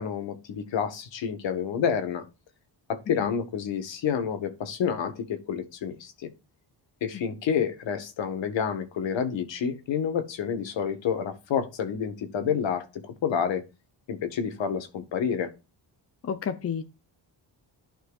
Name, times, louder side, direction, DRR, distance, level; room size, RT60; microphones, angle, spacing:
voice 1, 0.0-2.2 2.9-6.3 7.0-13.6 14.1-15.5, left 7 dB, 80° left, 1.5 m, -29 dB
voice 2, 16.2-16.8, left 7 dB, 35° left, 0.6 m, -32 dB
11.5 x 4.5 x 2.4 m
cardioid pair, 125°, 44 cm